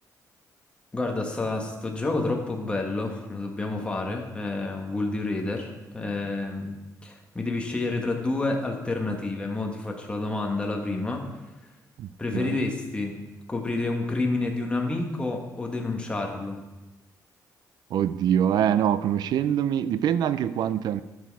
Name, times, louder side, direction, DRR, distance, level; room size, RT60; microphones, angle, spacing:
voice 1, 0.9-6.8 7.0-11.2 12.2-13.2 13.5-16.6, left 2 dB, 15° left, 1 dB, 1.5 m, -29 dB
voice 2, 12.0-12.6 17.9-21.0, right 9 dB, 70° right, 14 dB, 0.4 m, -24 dB
12.5 x 6.2 x 4.7 m, 1.1 s
cardioid pair, 135°, 7 cm